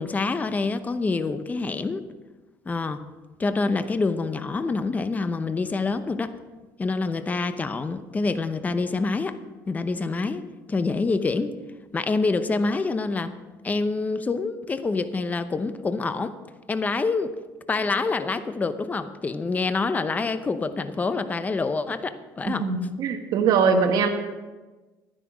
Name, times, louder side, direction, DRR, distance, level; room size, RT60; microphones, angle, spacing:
voice 1, 0.0-2.0 2.7-3.1 3.4-6.3 6.8-9.4 9.7-11.6 11.9-13.3 13.6-16.3 16.7-17.3 17.7-22.7, left 3 dB, 20° left, 11 dB, 0.8 m, -26 dB
voice 2, 22.5-24.1, right 5 dB, 65° right, 4 dB, 1.3 m, -22 dB
11.5 x 10.0 x 5.0 m, 1.2 s
cardioid pair, 105°, 7 cm